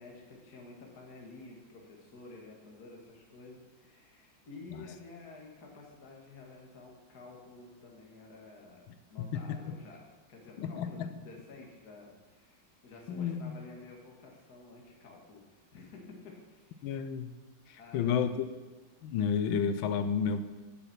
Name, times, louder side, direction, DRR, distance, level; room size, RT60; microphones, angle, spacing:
voice 1, 0.0-16.1 16.5-16.9 17.8-18.3, left 3 dB, 50° left, -1 dB, 2.2 m, -51 dB
voice 2, 9.2-9.6 10.6-11.1 13.1-13.6 16.8-17.3 17.7-18.5 19.0-20.4, left 7 dB, 85° left, 10 dB, 1.5 m, -31 dB
12.0 x 5.8 x 6.1 m, 1.3 s
omnidirectional pair, 2.1 m